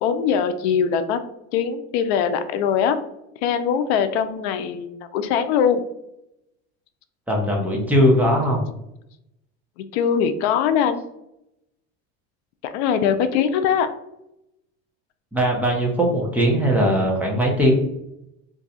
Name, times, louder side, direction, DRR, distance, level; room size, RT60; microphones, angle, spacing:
voice 1, 0.0-1.2 1.5-3.0 3.4-5.8 9.8-11.0 12.6-13.9, left 7 dB, 85° left, 9 dB, 0.5 m, -21 dB
voice 2, 7.3-8.6 15.3-17.7, equal, 5° right, -2 dB, 0.7 m, -19 dB
2.6 x 2.3 x 4.0 m, 0.82 s
cardioid pair, 140°, 32 cm